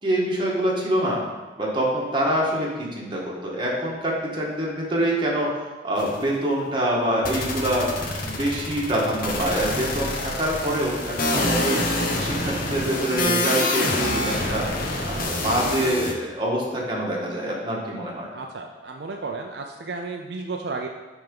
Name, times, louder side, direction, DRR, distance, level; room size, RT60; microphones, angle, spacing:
voice 1, 0.0-1.3 1.6-7.9 8.2-11.8 12.2-14.7 15.0-18.3, right 1 dB, 30° right, -4 dB, 1.6 m, -25 dB
sound 1, 6.0-6.2 7.2-16.1, left 2 dB, 55° left, 0.9 m, -26 dB
voice 2, 18.3-20.9, right 3 dB, 70° right, 2 dB, 0.5 m, -33 dB
8.8 x 3.6 x 5.4 m, 1.2 s
head